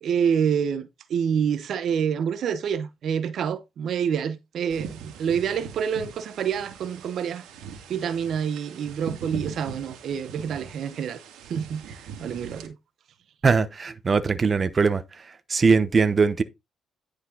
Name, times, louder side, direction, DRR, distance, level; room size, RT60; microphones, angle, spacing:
voice 1, 0.0-7.4 7.9-11.2 11.5-12.8, right 7 dB, 65° right, 0.9 m, -27 dB
sound 1, 4.7-12.7, right 6 dB, 90° right, 2.1 m, -41 dB
voice 2, 13.4-15.0 15.5-16.4, right 5 dB, 35° right, 0.9 m, -20 dB
10.5 x 5.1 x 3.9 m
cardioid pair, 100°, 0 cm